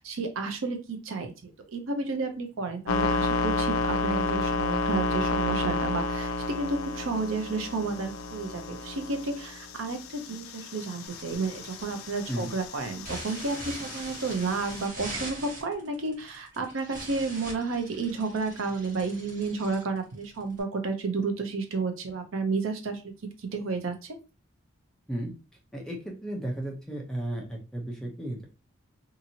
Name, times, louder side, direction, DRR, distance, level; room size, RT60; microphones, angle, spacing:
voice 1, 0.0-3.7 4.0-23.0 23.4-24.2, right 3 dB, 75° right, 6 dB, 0.6 m, -31 dB
sound 1, 2.9-14.8, left 3 dB, 90° left, 0.4 m, -31 dB
sound 2, 11.1-20.6, right 1 dB, 40° right, 1.2 m, -42 dB
voice 2, 25.7-28.4, right 1 dB, 5° left, -1 dB, 0.6 m, -34 dB
2.8 x 2.6 x 2.7 m, 0.31 s
head